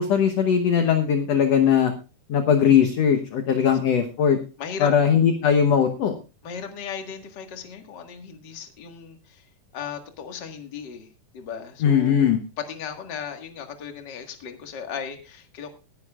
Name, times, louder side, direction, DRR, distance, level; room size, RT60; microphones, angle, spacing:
voice 1, 0.0-1.9 2.3-4.4 4.8-6.1 11.8-12.4, left 8 dB, 65° left, 7 dB, 1.7 m, -19 dB
voice 2, 4.6-4.9 6.4-9.5 9.7-11.1 11.3-12.3 12.6-15.7, left 7 dB, 40° left, 4 dB, 1.6 m, -36 dB
19.5 x 10.5 x 2.4 m, 0.32 s
omnidirectional pair, 4.2 m